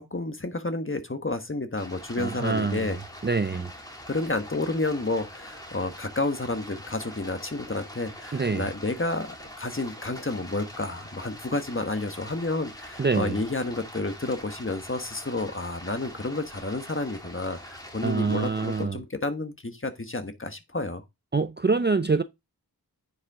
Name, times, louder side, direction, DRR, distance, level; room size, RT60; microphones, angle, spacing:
voice 1, 0.0-3.0 4.1-21.0, left 2 dB, 30° left, 1.4 m, -30 dB
Stream, 1.8-18.8, equal, 10° left, 2.5 m, -44 dB
voice 2, 2.2-2.9 3.2-3.7 8.3-8.7 13.0-13.4 18.0-19.0 21.3-22.2, right 4 dB, 25° right, 0.5 m, -25 dB
9.6 x 5.6 x 3.6 m
wide cardioid pair, 55°, 39 cm